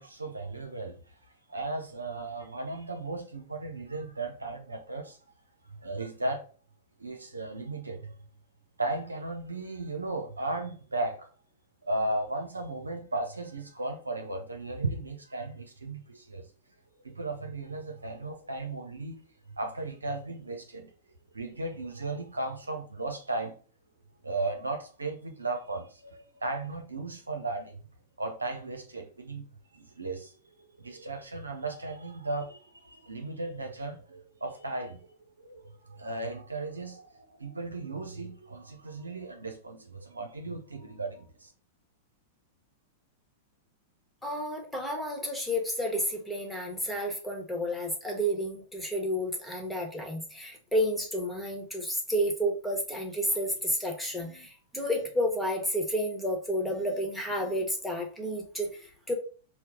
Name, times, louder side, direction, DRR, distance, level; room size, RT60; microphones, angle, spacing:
voice 1, 0.0-5.2 5.6-6.4 7.0-8.2 8.8-11.3 11.8-16.5 17.0-23.9 24.2-27.8 28.2-29.4 29.7-41.5, right 2 dB, 90° right, 0.7 m, -36 dB
voice 2, 44.2-59.1, equal, 5° left, 1.2 m, -31 dB
4.5 x 2.2 x 3.7 m
hypercardioid pair, 100°, 0 cm